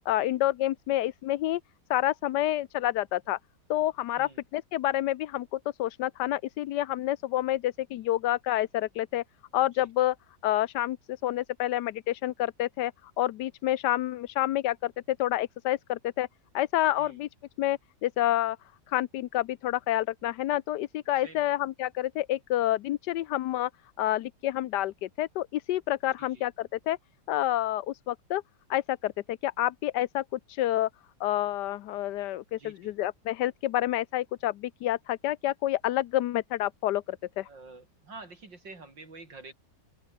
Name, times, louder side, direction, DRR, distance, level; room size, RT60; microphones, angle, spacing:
voice 1, 0.1-1.6 1.9-3.4 3.7-9.2 9.5-10.1 10.4-12.9 13.2-16.3 16.5-17.3 17.6-18.6 18.9-23.7 24.0-27.0 27.3-28.4 28.7-30.9 31.2-37.5, left 14 dB, 75° left, 1.2 m, -28 dB
voice 2, 21.2-21.5 26.2-26.5 32.5-33.0 37.4-39.5, right 3 dB, 85° right, 5.8 m, -48 dB
open air
omnidirectional pair, 1.9 m